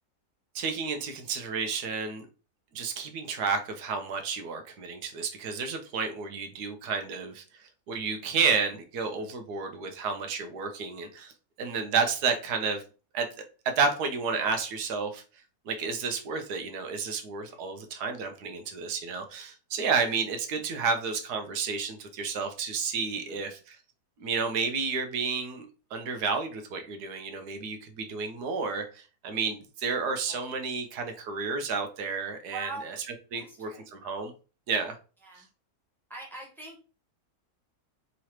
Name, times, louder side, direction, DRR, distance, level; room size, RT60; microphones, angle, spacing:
voice 1, 0.5-2.3 2.7-11.3 11.6-12.8 13.1-13.3 13.8-15.2 15.7-23.8 24.2-25.7 25.9-33.0 33.3-34.3 34.7-35.0, right 5 dB, 85° right, 6 dB, 1.3 m, -31 dB
voice 2, 23.1-23.5 30.3-30.4 32.5-33.0 33.3-33.8 35.2-35.5 36.1-36.8, right 2 dB, ahead, -4 dB, 1.0 m, -42 dB
3.7 x 3.2 x 2.9 m, 0.35 s
omnidirectional pair, 1.6 m